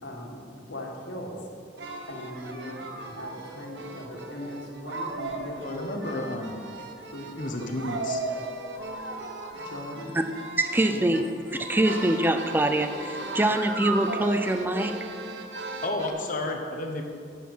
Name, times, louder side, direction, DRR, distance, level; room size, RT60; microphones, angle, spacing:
voice 1, 0.0-1.4 2.1-6.2 7.1-7.3 7.6-7.7 9.5-10.1 10.8-11.2, left 1 dB, 85° left, 0 dB, 2.0 m, -39 dB
sound 1, 1.8-16.1, right 3 dB, 70° right, 1.0 m, -37 dB
voice 2, 5.6-6.6 7.4-8.2 15.8-17.0, left 2 dB, 45° left, 3 dB, 1.1 m, -31 dB
sound 2, 8.7-10.4 11.5-14.9, left 1 dB, 20° left, 1.6 m, -43 dB
voice 3, 10.6-11.2 11.5-15.0, right 1 dB, 10° right, 7 dB, 0.5 m, -24 dB
10.5 x 8.5 x 5.6 m, 2.3 s
head